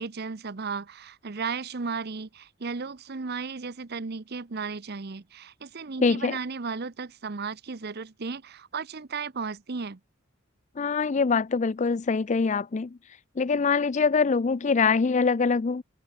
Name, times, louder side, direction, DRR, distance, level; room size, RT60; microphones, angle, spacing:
voice 1, 0.0-10.0, right 4 dB, 50° right, 0.8 m, -35 dB
voice 2, 6.0-6.4 10.8-13.0 13.4-15.8, left 5 dB, 35° left, 0.4 m, -24 dB
head